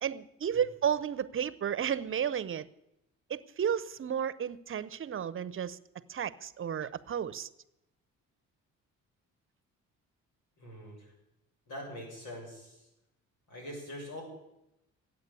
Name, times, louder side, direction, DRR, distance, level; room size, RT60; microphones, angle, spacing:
voice 1, 0.0-2.7 3.3-5.8 6.1-7.5, right 8 dB, 45° right, 14 dB, 0.8 m, -32 dB
voice 2, 10.6-11.1 11.7-12.8 13.5-14.2, equal, 85° left, -1 dB, 6.7 m, -43 dB
14.5 x 9.2 x 8.4 m, 0.88 s
cardioid pair, 90°, 30 cm